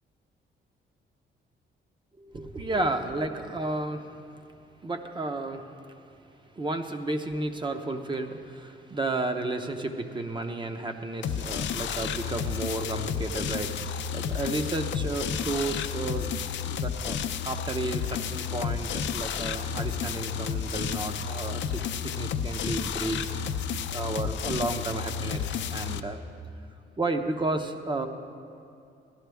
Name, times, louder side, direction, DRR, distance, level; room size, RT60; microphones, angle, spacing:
voice 1, 2.2-4.5 4.8-5.7 6.5-16.3 16.6-17.2 17.4-23.3 23.9-26.2 27.0-28.1, right 2 dB, 25° right, 7 dB, 0.8 m, -32 dB
sound 1, 11.2-26.0, left 7 dB, 65° left, 0.5 m, -31 dB
14.5 x 11.5 x 3.5 m, 2.5 s
cardioid pair, 90°, 20 cm